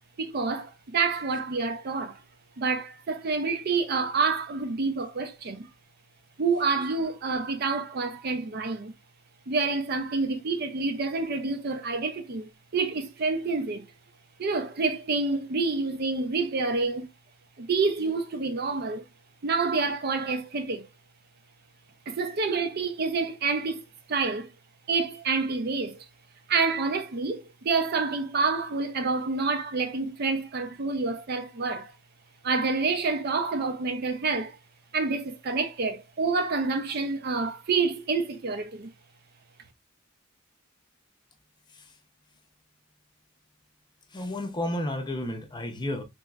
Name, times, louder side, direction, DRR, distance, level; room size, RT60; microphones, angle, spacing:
voice 1, 0.2-2.2 2.6-5.7 6.4-8.9 9.5-13.9 14.4-17.1 17.6-19.0 19.4-20.9 22.1-23.8 24.1-24.5 24.9-26.0 26.5-31.9 32.4-34.5 34.9-38.9, right 4 dB, 50° right, 0.5 m, -28 dB
voice 2, 44.1-46.0, left 1 dB, 20° left, 0.6 m, -32 dB
3.3 x 3.0 x 2.3 m
head